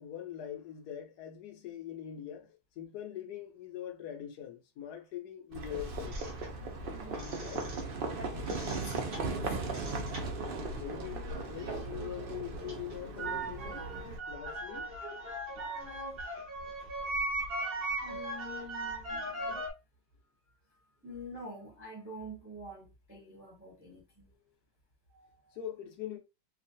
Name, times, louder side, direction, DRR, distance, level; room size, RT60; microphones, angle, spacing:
voice 1, 0.0-6.4 7.3-7.7 10.8-13.9 14.3-14.9 25.5-26.2, left 10 dB, 75° left, 1.1 m, -43 dB
Livestock farm animals working animals, 5.5-14.2, right 3 dB, 80° right, 0.5 m, -38 dB
sound 1, 6.1-8.1 8.4-12.1 12.4-19.7, right 2 dB, 45° right, 0.8 m, -39 dB
voice 2, 6.9-7.3 8.1-9.6 15.5-16.2 18.0-19.7 20.7-24.3 25.1-25.6, equal, 10° right, 0.6 m, -48 dB
3.0 x 2.4 x 2.6 m
omnidirectional pair, 1.8 m